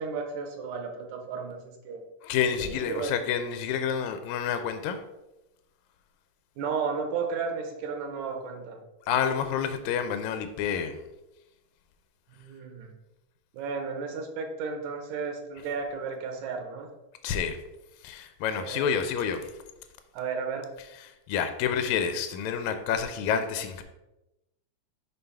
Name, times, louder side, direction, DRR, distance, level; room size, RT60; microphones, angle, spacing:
voice 1, 0.0-2.0 2.7-3.1 6.6-8.8 12.4-12.9 13.5-16.9 18.6-18.9 20.1-20.7, right 5 dB, 85° right, 3 dB, 2.2 m, -33 dB
voice 2, 2.2-5.0 9.1-11.0 17.2-17.6 18.0-19.5 21.3-23.8, left 7 dB, 85° left, 8 dB, 1.9 m, -28 dB
5.5 x 5.4 x 3.4 m, 0.95 s
omnidirectional pair, 3.3 m